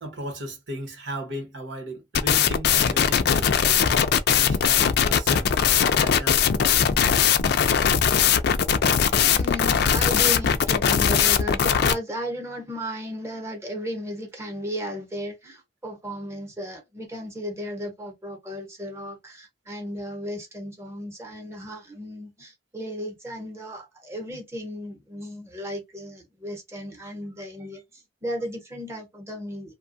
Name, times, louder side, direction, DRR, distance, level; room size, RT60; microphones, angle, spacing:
voice 1, 0.0-3.9 4.3-6.4, right 1 dB, 80° right, 1.2 m, -36 dB
sound 1, 2.1-11.9, left 8 dB, 60° left, 0.4 m, -20 dB
voice 2, 9.2-27.8 28.2-29.8, equal, 15° right, 0.9 m, -35 dB
2.8 x 2.2 x 2.6 m
head